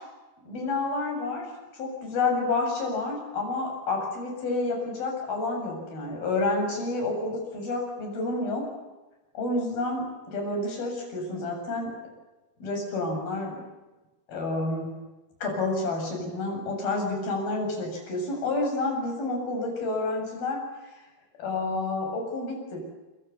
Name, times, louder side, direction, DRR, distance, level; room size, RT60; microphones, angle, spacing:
voice 1, 0.4-1.5 1.7-8.7 9.3-11.9 12.6-13.6 14.3-15.0 15.4-20.7 21.4-22.8, left 2 dB, 60° left, 2 dB, 9.4 m, -29 dB
28.5 x 25.0 x 7.1 m, 1.1 s
omnidirectional pair, 4.7 m